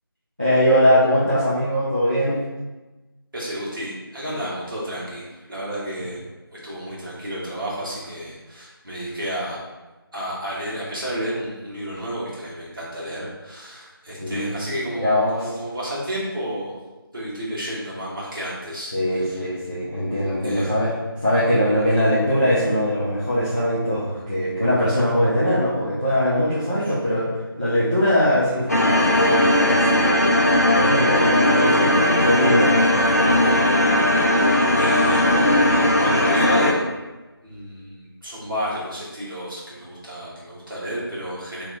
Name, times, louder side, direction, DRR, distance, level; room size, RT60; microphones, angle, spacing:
voice 1, 0.4-2.4 14.2-14.5 15.0-15.5 18.9-27.3 27.6-30.2 30.5-33.5, equal, 20° right, -10 dB, 0.4 m, -21 dB
voice 2, 3.3-6.2 6.5-9.6 10.1-16.7 17.1-19.4 20.4-20.8 26.8-26.9 34.8-35.6 35.9-36.8 37.4-41.6, equal, 60° right, -8 dB, 1.5 m, -31 dB
sound 1, 28.7-36.7, left 1 dB, 40° left, 0.4 m, -18 dB
3.7 x 2.9 x 2.4 m, 1.1 s
figure-of-eight pair, 170°, 13 cm